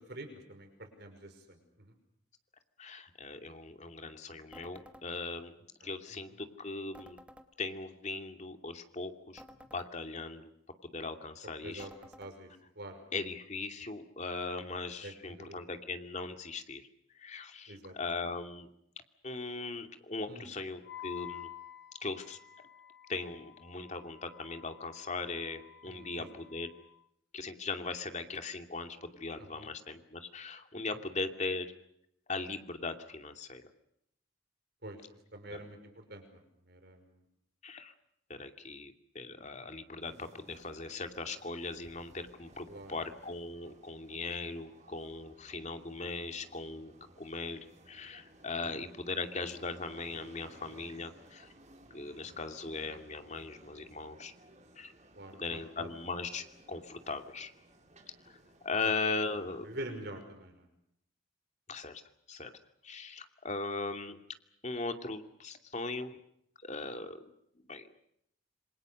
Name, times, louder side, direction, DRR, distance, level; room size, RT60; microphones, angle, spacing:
voice 1, 0.0-1.9 5.8-5.9 6.3-6.4 11.6-13.0 15.0-15.6 17.7-17.9 20.3-20.5 25.8-26.3 29.4-29.7 30.9-31.0 34.8-35.0 35.3-37.2 42.7-43.0 48.6-48.8 55.2-55.9 58.8-58.9 59.6-60.7, right 1 dB, 55° right, 6 dB, 5.6 m, -46 dB
voice 2, 2.8-5.5 5.8-7.2 7.6-9.4 9.7-10.5 10.8-11.9 13.1-16.9 17.1-18.7 19.2-21.5 22.0-22.4 23.1-26.7 27.3-31.7 32.3-33.6 35.5-35.6 37.6-37.9 38.3-51.5 51.9-54.3 54.8-54.9 55.3-57.5 58.3-58.4 58.6-59.7 61.7-62.0 62.3-62.5 62.8-64.2 64.6-66.2 66.6-67.3 67.7-67.9, left 3 dB, 40° left, 6 dB, 2.6 m, -39 dB
sound 1, 4.5-5.1 6.9-7.5 9.4-9.9 11.8-12.3, equal, 5° right, 2.1 m, -53 dB
Wind instrument woodwind instrument, 20.8-27.0, left 12 dB, 60° left, 1.9 m, -50 dB
sound 2, 40.0-59.9, right 1 dB, 40° right, 5.0 m, -59 dB
27.5 x 26.5 x 6.6 m, 0.75 s
head